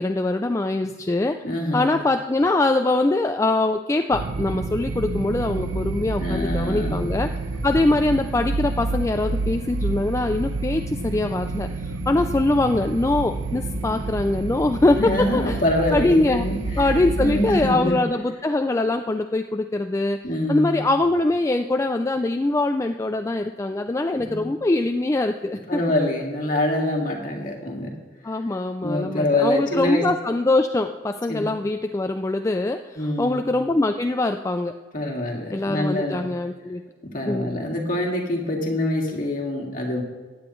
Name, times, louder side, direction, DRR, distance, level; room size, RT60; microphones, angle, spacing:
voice 1, 0.0-1.4 1.7-7.3 7.6-15.6 15.9-16.5 16.8-20.2 20.5-25.8 28.2-34.8 35.5-36.8 37.3-37.5, left 2 dB, 15° left, 6 dB, 0.3 m, -23 dB
voice 2, 1.4-2.0 6.2-7.1 15.0-16.9 17.2-18.0 20.2-20.9 24.1-24.5 25.7-27.9 28.3-28.4 28.8-30.0 31.3-31.6 33.0-33.5 34.9-36.2 37.0-40.0, left 1 dB, 45° left, 0 dB, 2.1 m, -25 dB
sound 1, 4.1-17.7, right 3 dB, 70° right, 0.8 m, -29 dB
15.5 x 9.7 x 3.1 m, 1.4 s
head